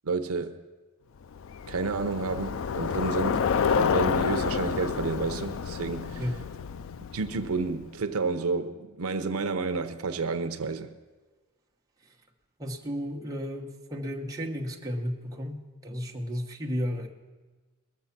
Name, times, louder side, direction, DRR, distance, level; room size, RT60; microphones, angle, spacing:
voice 1, 0.0-0.6 1.7-6.2 7.1-10.9, right 4 dB, 75° right, 8 dB, 0.7 m, -30 dB
Bicycle, 1.3-7.8, left 6 dB, 60° left, 0.4 m, -29 dB
voice 2, 12.6-17.1, equal, 15° right, 0 dB, 1.1 m, -33 dB
21.0 x 7.1 x 5.8 m, 1.3 s
head